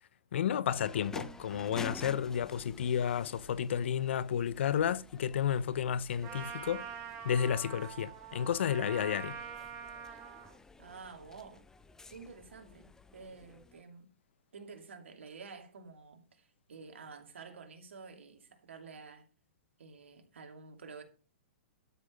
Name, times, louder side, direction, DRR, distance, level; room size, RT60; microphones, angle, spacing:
voice 1, 0.3-6.8 7.2-9.4, left 8 dB, 70° left, 0.8 m, -32 dB
sound 1, 0.7-13.8, left 3 dB, 10° left, 0.7 m, -51 dB
Trumpet, 6.2-10.6, right 8 dB, 35° right, 2.1 m, -44 dB
voice 2, 10.8-11.7 12.1-14.1 14.5-19.3 19.8-21.0, right 5 dB, 85° right, 2.7 m, -50 dB
12.5 x 6.5 x 6.2 m
hypercardioid pair, 135°, 7 cm